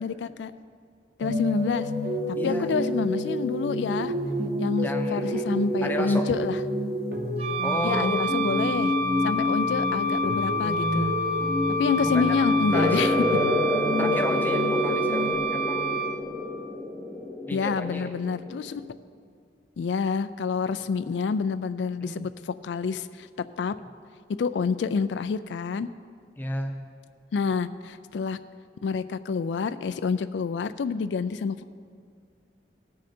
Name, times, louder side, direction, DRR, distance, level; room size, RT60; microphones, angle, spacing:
voice 1, 0.0-0.5 1.2-1.9 2.3-4.1 4.6-6.6 7.8-8.9 9.2-11.1 11.8-13.1 17.5-18.8 19.8-22.3 22.6-23.3 23.6-23.7 24.4-25.9 27.3-28.4 28.8-31.7, left 5 dB, 85° left, 13 dB, 0.4 m, -28 dB
sound 1, 1.2-15.3, equal, 60° right, 1.4 m, -28 dB
voice 2, 2.3-2.7 4.8-5.5 5.8-6.3 7.6-8.1 12.0-12.4 12.7-13.2 14.0-16.2 17.4-18.1 22.0-22.2 26.4-26.8, left 1 dB, 10° left, 4 dB, 0.7 m, -33 dB
Wind instrument woodwind instrument, 7.4-16.2, equal, 35° right, 0.8 m, -28 dB
sound 2, 12.7-18.9, left 2 dB, 5° right, 1.0 m, -29 dB
17.5 x 6.3 x 4.3 m, 2.2 s
head